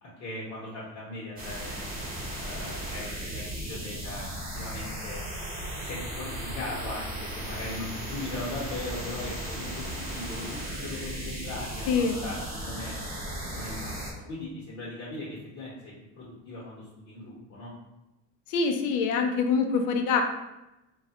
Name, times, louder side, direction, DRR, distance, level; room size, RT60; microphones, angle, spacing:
voice 1, 0.0-1.8 2.4-4.3 4.5-5.2 5.8-11.9 12.2-13.0 13.5-17.7, left 2 dB, 50° left, -6 dB, 1.0 m, -39 dB
sound 1, 1.4-14.1, right 1 dB, 30° right, 0.8 m, -36 dB
voice 2, 11.9-12.2 18.5-20.2, left 5 dB, 70° left, 5 dB, 0.5 m, -25 dB
3.2 x 2.3 x 2.8 m, 0.96 s
cardioid pair, 155°, 31 cm